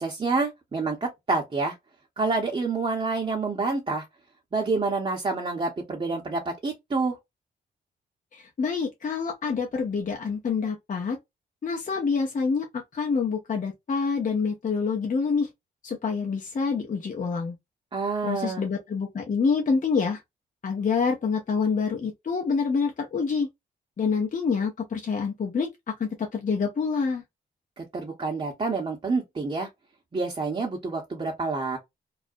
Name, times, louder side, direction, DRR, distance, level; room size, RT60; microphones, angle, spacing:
voice 1, 0.0-1.7 2.2-4.1 4.5-7.2 17.9-18.6 27.8-29.7 30.1-31.8, right 3 dB, 30° right, 0.7 m, -28 dB
voice 2, 8.3-11.2 11.6-15.5 15.8-17.6 18.2-20.2 20.6-23.5 24.0-25.7 26.0-27.2, left 5 dB, 45° left, 0.7 m, -27 dB
2.4 x 2.0 x 2.5 m
cardioid pair, 55°, 19 cm